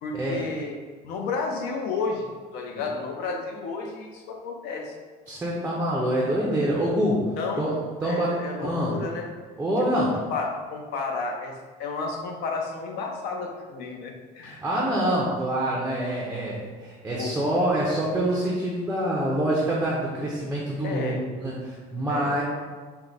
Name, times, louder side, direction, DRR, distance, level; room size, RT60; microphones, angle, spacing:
voice 1, 0.0-0.7 1.0-5.0 7.4-7.8 8.0-9.3 10.1-14.6 17.2-17.3 20.8-21.2 22.1-22.4, left 4 dB, 75° left, 1 dB, 0.7 m, -32 dB
voice 2, 5.3-7.3 7.6-8.9 9.6-10.2 14.4-22.4, right 1 dB, 10° right, -4 dB, 0.5 m, -26 dB
4.5 x 2.1 x 3.9 m, 1.4 s
cardioid pair, 165°, 17 cm